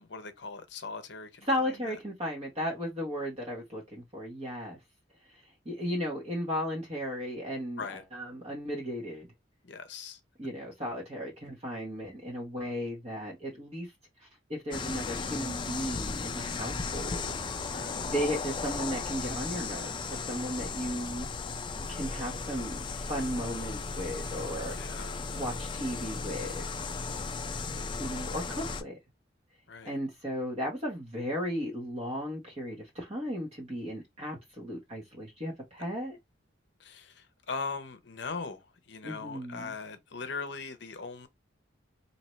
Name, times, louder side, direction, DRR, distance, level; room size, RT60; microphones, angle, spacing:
voice 1, 0.0-2.0 7.8-8.0 9.6-10.2 17.7-18.1 24.7-25.3 29.7-30.0 36.8-41.3, left 4 dB, 60° left, 0.7 m, -40 dB
voice 2, 1.5-4.8 5.3-9.3 10.4-13.9 14.2-21.3 21.7-24.8 25.3-26.6 28.0-29.0 29.8-36.2 39.0-39.7, equal, 30° right, 1.2 m, -35 dB
sound 1, 14.7-28.8, left 4 dB, 25° left, 0.4 m, -36 dB
4.3 x 2.8 x 3.1 m
head